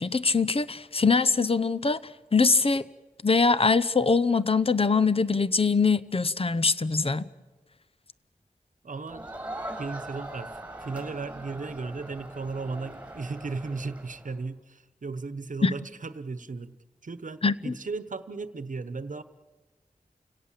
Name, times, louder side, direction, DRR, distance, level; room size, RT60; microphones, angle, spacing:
voice 1, 0.0-2.0 2.3-2.8 3.2-7.2 15.6-15.7 17.4-17.7, left 4 dB, 40° left, 16 dB, 0.8 m, -23 dB
voice 2, 8.8-9.3 9.8-10.5 10.8-16.7 17.0-19.2, right 4 dB, 65° right, 13 dB, 1.1 m, -35 dB
Crowd, 9.1-14.4, right 1 dB, 10° right, 5.7 m, -41 dB
30.0 x 17.5 x 7.5 m, 1.3 s
wide cardioid pair, 65°, 14 cm